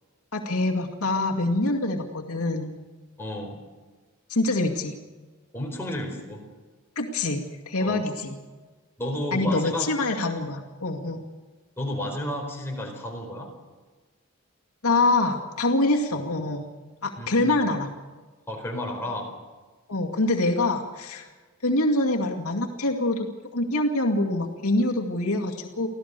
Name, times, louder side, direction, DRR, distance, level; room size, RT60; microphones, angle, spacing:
voice 1, 0.3-2.7 4.3-5.0 7.0-8.4 9.3-11.2 14.8-16.7 17.0-17.9 19.9-21.3 21.6-23.3 23.5-25.9, left 2 dB, 80° left, 1 dB, 2.2 m, -25 dB
voice 2, 3.2-3.6 5.5-6.4 7.8-8.0 9.0-9.9 11.8-13.5 17.2-17.6 18.5-19.3, left 1 dB, 10° left, 0 dB, 4.6 m, -32 dB
25.0 x 16.0 x 6.9 m, 1.3 s
head